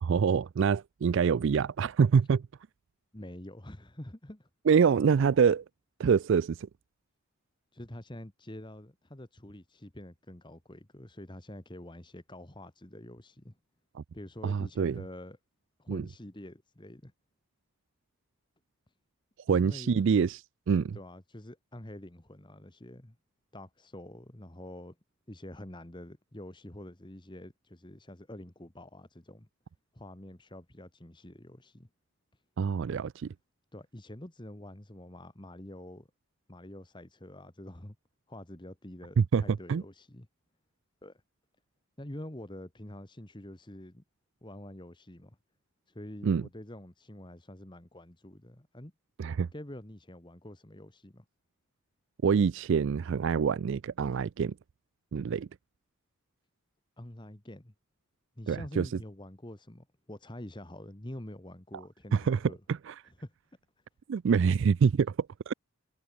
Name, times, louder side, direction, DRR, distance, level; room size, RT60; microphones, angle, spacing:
voice 1, 0.0-2.4 4.7-5.6 6.0-6.6 14.4-15.0 15.9-16.0 19.5-20.4 20.7-21.0 32.6-33.3 39.2-39.4 39.7-39.8 46.2-46.4 49.2-49.5 52.2-54.5 55.1-55.5 58.5-58.9 62.1-62.4 62.7-62.9 64.1-65.5, right 6 dB, 55° right, 0.3 m, -25 dB
voice 2, 3.1-4.5 7.7-13.6 14.1-15.4 15.8-17.1 19.5-20.2 20.9-23.1 23.5-24.9 25.3-29.5 29.9-31.9 33.7-36.1 36.5-37.9 38.3-40.3 41.0-41.2 42.0-44.0 44.4-45.4 45.9-48.9 49.5-51.2 57.0-57.7 58.4-62.6 63.0-63.3, left 1 dB, 20° left, 1.5 m, -46 dB
head